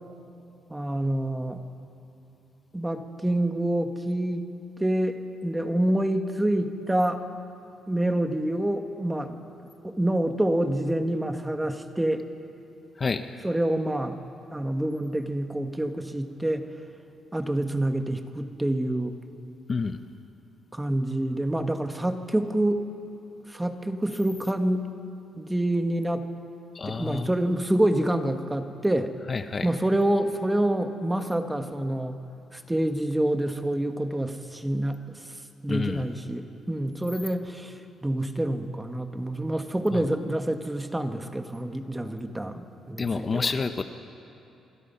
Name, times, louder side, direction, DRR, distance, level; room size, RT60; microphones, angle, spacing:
voice 1, 0.7-1.6 2.7-4.5 4.8-7.2 7.9-9.4 9.8-12.3 13.4-14.2 14.5-16.7 17.3-19.2 20.7-22.8 23.5-24.9 25.4-26.3 26.9-29.2 29.6-32.2 32.5-35.3 35.6-43.5, right 1 dB, 10° right, 6 dB, 1.6 m, -27 dB
voice 2, 26.7-27.3 29.3-29.7 35.7-36.0 39.9-40.0 43.0-43.8, left 4 dB, 35° left, 8 dB, 1.0 m, -28 dB
26.0 x 25.0 x 5.8 m, 2.8 s
cardioid pair, 90°, 0 cm